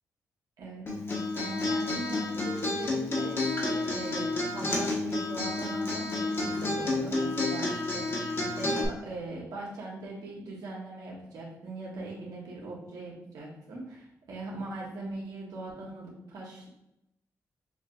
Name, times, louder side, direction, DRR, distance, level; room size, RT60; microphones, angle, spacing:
voice 1, 0.6-8.1 8.6-16.7, right 2 dB, 80° right, -3 dB, 1.4 m, -40 dB
Acoustic guitar, 0.9-8.8, left 2 dB, 40° left, 1.3 m, -30 dB
6.1 x 2.8 x 2.6 m, 0.84 s
cardioid pair, 65°, 6 cm